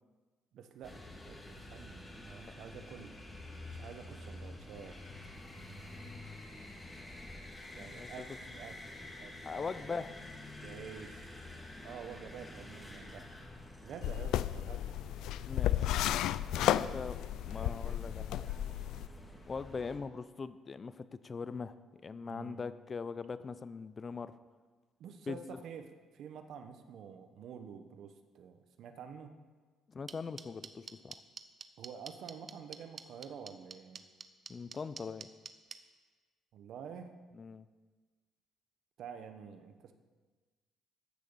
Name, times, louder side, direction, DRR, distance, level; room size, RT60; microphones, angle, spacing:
voice 1, 0.5-1.0 1.3-3.2 3.7-5.4 7.7-10.0 10.6-11.5 11.8-13.3 13.8-15.0 16.5-18.0 22.3-22.6 25.0-29.3 31.8-34.1 36.5-37.1 39.0-39.9, right 7 dB, 70° right, 8 dB, 1.1 m, -49 dB
sound 1, 0.8-20.0, left 1 dB, 15° left, 2.7 m, -49 dB
voice 2, 7.7-8.1 9.4-10.1 15.4-16.1 16.5-17.2 17.4-18.5 19.5-21.8 22.0-24.3 25.3-25.4 29.9-31.2 34.5-35.3 37.3-37.7, left 5 dB, 35° left, 14 dB, 0.6 m, -41 dB
sound 2, 14.0-19.1, left 13 dB, 80° left, 0.3 m, -33 dB
sound 3, 30.1-35.8, right 6 dB, 40° right, 0.8 m, -45 dB
13.5 x 6.6 x 7.1 m, 1.4 s
cardioid pair, 95°, 0 cm